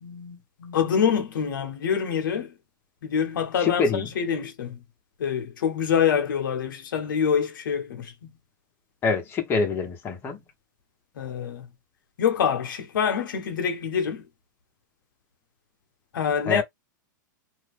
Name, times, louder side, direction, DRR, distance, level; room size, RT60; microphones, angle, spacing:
voice 1, 0.0-2.5 3.0-4.8 5.2-8.3 11.2-11.7 12.2-14.2 16.1-16.6, left 7 dB, 80° left, 0.9 m, -26 dB
voice 2, 3.6-4.1 9.0-10.4 16.5-16.6, left 4 dB, 20° left, 1.1 m, -25 dB
2.8 x 2.5 x 3.4 m
hypercardioid pair, 145°, 11 cm